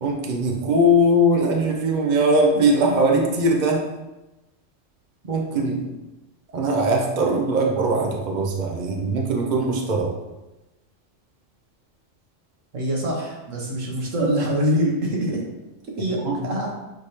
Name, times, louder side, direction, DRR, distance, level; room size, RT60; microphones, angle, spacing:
voice 1, 0.0-3.8 5.2-5.8 6.5-10.1 14.2-14.5 16.2-16.5, right 1 dB, 40° right, 0 dB, 0.9 m, -21 dB
voice 2, 12.7-15.4 16.0-16.7, equal, 85° right, -1 dB, 1.6 m, -24 dB
6.6 x 3.3 x 4.3 m, 1.0 s
omnidirectional pair, 1.3 m